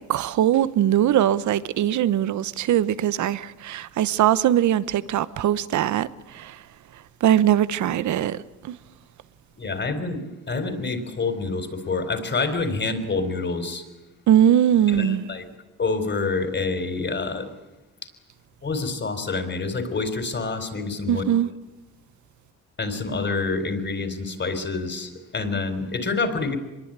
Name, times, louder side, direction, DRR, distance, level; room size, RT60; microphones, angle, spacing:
voice 1, 0.1-6.6 7.2-8.7 14.3-15.2 21.1-21.5, right 11 dB, 70° right, 1.1 m, -21 dB
voice 2, 9.6-10.2 10.5-13.8 14.9-15.5 15.8-17.5 18.6-21.2 22.8-26.6, left 3 dB, 35° left, 4.3 m, -27 dB
24.5 x 22.0 x 9.0 m
cardioid pair, 90°, 30 cm